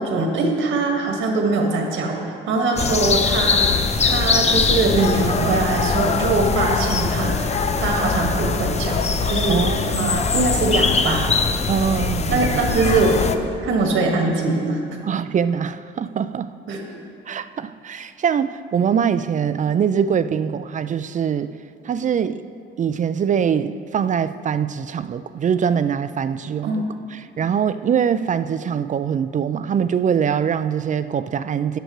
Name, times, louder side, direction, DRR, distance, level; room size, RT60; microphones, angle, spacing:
voice 1, 0.1-2.2 2.5-3.7 4.0-7.5 7.8-11.3 12.3-13.2 13.6-14.8 16.7-16.8 26.6-26.8, right 3 dB, 80° right, 1 dB, 1.7 m, -22 dB
sound 1, 2.8-13.4, left 4 dB, 35° left, 0.6 m, -21 dB
voice 2, 9.5-10.2 11.7-12.6 15.0-16.5 17.3-21.5 21.8-22.4 22.8-26.8 27.1-31.8, right 7 dB, 40° right, 13 dB, 0.4 m, -23 dB
13.5 x 10.0 x 3.1 m, 2.4 s
cardioid pair, 90°, 20 cm